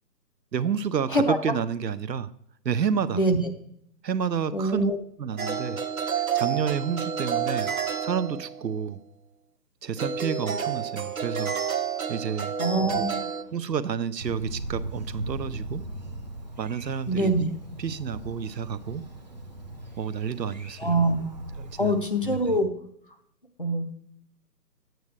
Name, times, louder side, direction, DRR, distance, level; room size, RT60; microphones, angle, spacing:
voice 1, 0.5-2.3 2.6-3.2 4.0-4.9 5.2-5.8 6.1-7.7 8.0-9.0 9.8-12.5 13.0-13.1 13.5-15.8 16.6-17.3 17.8-19.0 20.0-21.1 21.6-22.6, right 7 dB, 80° right, 14 dB, 0.8 m, -30 dB
voice 2, 4.5-5.0 12.6-13.3 17.1-17.4 20.8-21.3 21.8-22.7 23.6-23.9, right 1 dB, 35° left, 7 dB, 0.7 m, -24 dB
sound 1, 5.4-8.7 10.0-13.4, right 7 dB, 55° right, 1.1 m, -29 dB
Thunder, 14.2-22.6, right 1 dB, 25° right, 0.8 m, -39 dB
11.0 x 9.1 x 3.2 m, 0.70 s
hypercardioid pair, 175°, 49 cm